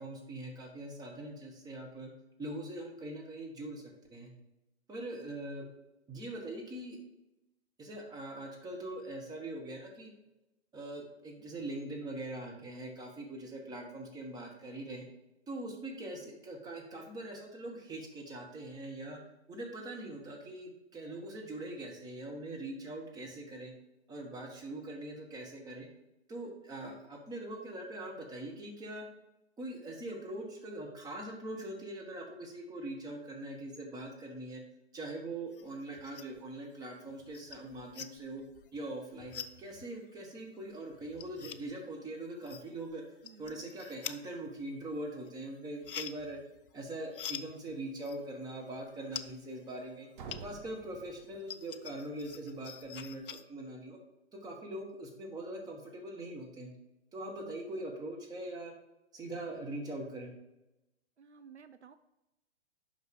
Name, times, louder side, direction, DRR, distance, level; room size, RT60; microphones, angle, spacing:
voice 1, 0.0-2.1 2.4-4.3 4.9-5.7 6.1-7.0 7.8-10.1 10.7-15.1 15.5-19.2 19.5-23.7 24.1-25.9 26.3-29.1 29.6-34.6 34.9-38.4 38.7-43.0 43.4-46.4 46.7-50.1 50.4-54.0 54.3-56.7 57.1-58.7 59.1-60.3, right 1 dB, 10° right, 0 dB, 1.3 m, -42 dB
sound 1, 35.5-36.5 36.8-50.8 51.1-53.4, left 8 dB, 50° left, 0.5 m, -47 dB
voice 2, 43.2-43.7 61.2-62.0, right 6 dB, 75° right, 10 dB, 0.6 m, -55 dB
sound 2, 50.1-52.0, right 5 dB, 45° right, 1.1 m, -49 dB
8.1 x 5.7 x 3.7 m, 0.94 s
figure-of-eight pair, 115°, 34 cm